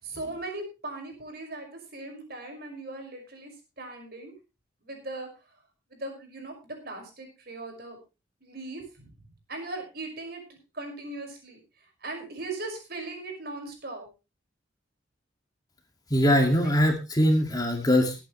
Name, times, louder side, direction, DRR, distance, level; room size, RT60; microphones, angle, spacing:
voice 1, 0.0-4.3 4.8-5.3 5.9-8.0 8.4-9.1 9.5-11.6 12.0-14.1, right 2 dB, 55° right, 4 dB, 5.6 m, -39 dB
voice 2, 16.1-18.2, equal, 20° left, 4 dB, 2.1 m, -22 dB
20.5 x 9.0 x 3.2 m, 0.29 s
head